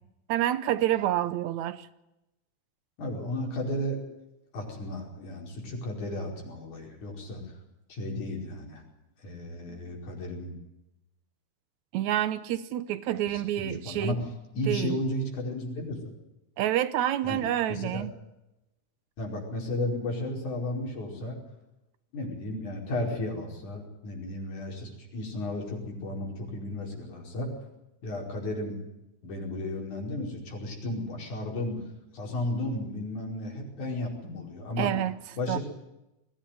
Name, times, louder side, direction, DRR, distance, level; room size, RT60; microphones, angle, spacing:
voice 1, 0.3-1.9 9.7-9.9 11.9-14.2 14.7-15.0 16.6-18.1 34.8-35.2 35.5-35.6, right 12 dB, 75° right, 2.1 m, -28 dB
voice 2, 3.0-4.0 4.5-7.5 7.9-8.8 9.2-10.5 13.3-14.2 14.5-16.0 17.2-17.4 17.7-18.0 19.2-21.4 22.1-27.5 28.0-28.8 29.2-31.8 32.1-34.9 35.4-35.6, left 1 dB, 75° left, 6.4 m, -34 dB
21.5 x 16.0 x 9.3 m
omnidirectional pair, 3.4 m